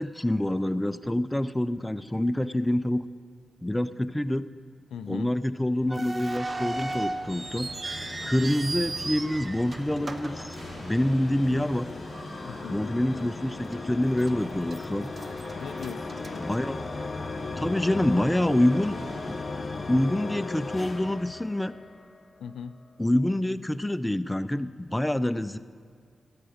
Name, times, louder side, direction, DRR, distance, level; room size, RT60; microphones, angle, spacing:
voice 1, 0.0-3.0 3.6-4.4 5.1-7.7 8.2-11.9 12.7-15.1 16.4-16.9 17.6-19.0 19.3-19.4 19.9-21.7 23.0-25.6, left 1 dB, 10° left, 14 dB, 0.4 m, -26 dB
voice 2, 4.9-5.3 12.4-12.8 15.5-16.5 22.4-22.8, left 7 dB, 85° left, 14 dB, 0.3 m, -39 dB
sound 1, 5.9-11.2 11.5-11.6 12.3-12.6 13.0-13.1 13.7-14.3 14.7-17.1, right 2 dB, 40° right, 0.6 m, -36 dB
sound 2, 6.1-22.2, left 3 dB, 45° left, 0.8 m, -38 dB
sound 3, 6.3-19.4, right 1 dB, 75° right, 2.8 m, -47 dB
13.0 x 8.7 x 5.0 m, 2.1 s
cardioid pair, 50°, 0 cm